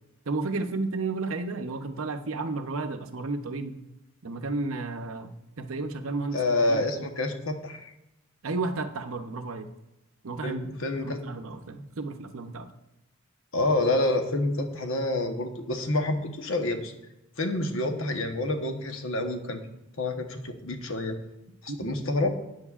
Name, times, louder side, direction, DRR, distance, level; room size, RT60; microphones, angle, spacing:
voice 1, 0.3-3.8 4.2-6.4 6.7-6.8 8.4-9.7 10.2-10.6 11.0-12.7 21.7-22.0, right 3 dB, 70° right, 7 dB, 0.7 m, -32 dB
voice 2, 6.3-7.9 10.4-11.2 13.5-16.9 17.4-19.6 20.0-21.2 21.6-22.3, left 2 dB, 65° left, 6 dB, 1.0 m, -28 dB
13.0 x 8.8 x 2.4 m, 0.93 s
head